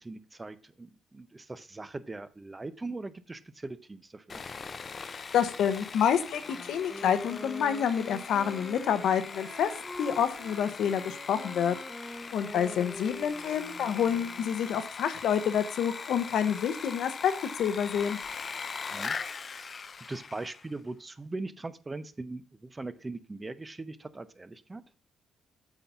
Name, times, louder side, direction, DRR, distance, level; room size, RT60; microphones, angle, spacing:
voice 1, 0.0-4.4 18.9-19.2 19.6-19.7 20.1-24.8, right 2 dB, 20° right, 14 dB, 0.6 m, -40 dB
Sawing, 4.3-20.7, left 5 dB, 40° left, 0.5 m, -41 dB
voice 2, 5.1-9.7 10.0-11.8 12.3-18.2, left 8 dB, 75° left, 11 dB, 0.8 m, -28 dB
Wind instrument woodwind instrument, 6.4-14.7, equal, ahead, 1.1 m, -44 dB
8.2 x 4.0 x 5.6 m, 0.40 s
cardioid pair, 90°, 0 cm